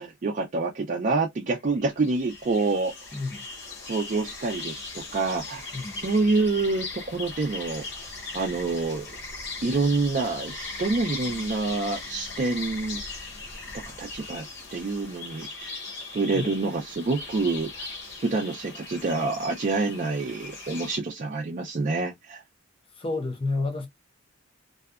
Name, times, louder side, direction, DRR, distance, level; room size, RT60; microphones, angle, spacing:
voice 1, 0.0-2.9 3.8-5.7 5.9-7.8 8.3-9.1 9.6-13.0 14.0-14.5 14.7-15.8 16.1-17.9 18.2-22.4, right 3 dB, 40° right, 0.4 m, -27 dB
sound 1, 1.6-21.0, left 3 dB, 60° left, 0.8 m, -39 dB
voice 2, 3.1-3.4 5.7-6.0 16.3-16.5 23.0-23.9, left 3 dB, 25° left, 0.6 m, -30 dB
2.6 x 2.1 x 2.3 m
head